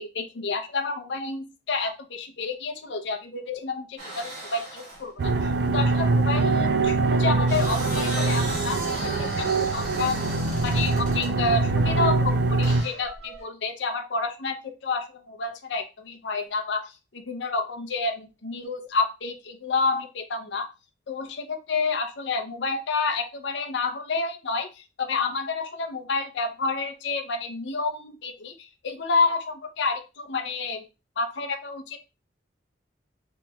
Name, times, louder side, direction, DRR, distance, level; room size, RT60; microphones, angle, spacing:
voice 1, 0.0-8.8 9.2-10.1 10.6-20.7 21.1-30.8 31.2-32.0, left 4 dB, 75° left, 3 dB, 0.6 m, -29 dB
sound 1, 4.0-5.1 7.2-11.4 12.6-13.4, right 1 dB, 40° right, 1.7 m, -37 dB
sound 2, 5.2-12.8, right 3 dB, 60° right, 0.4 m, -23 dB
5.2 x 2.9 x 2.2 m, 0.28 s
head